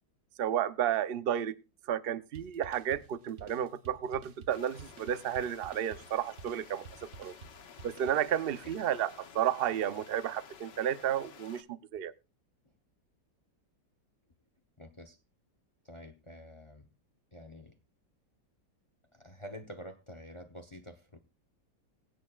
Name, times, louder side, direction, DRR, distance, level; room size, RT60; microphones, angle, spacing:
voice 1, 0.4-1.5 1.9-6.8 7.2-7.3 7.8-12.1, right 10 dB, 75° right, 0.5 m, -32 dB
sound 1, 2.3-8.7, right 5 dB, 50° right, 1.1 m, -52 dB
sound 2, 4.5-11.6, left 7 dB, 85° left, 1.8 m, -53 dB
voice 2, 14.8-15.2 15.8-16.9 17.3-17.7 19.1-21.2, equal, 25° left, 0.6 m, -48 dB
21.0 x 9.3 x 2.3 m
omnidirectional pair, 1.9 m